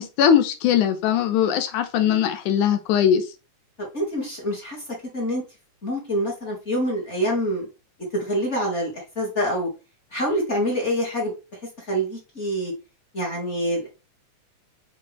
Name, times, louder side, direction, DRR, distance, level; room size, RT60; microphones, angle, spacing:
voice 1, 0.0-3.3, left 9 dB, 80° left, 2.2 m, -20 dB
voice 2, 3.9-4.8 5.1-5.4 5.8-7.7 8.1-9.7 10.1-11.3 11.8-12.7 13.1-13.9, equal, 25° left, 1.9 m, -26 dB
6.7 x 4.1 x 3.4 m
omnidirectional pair, 3.5 m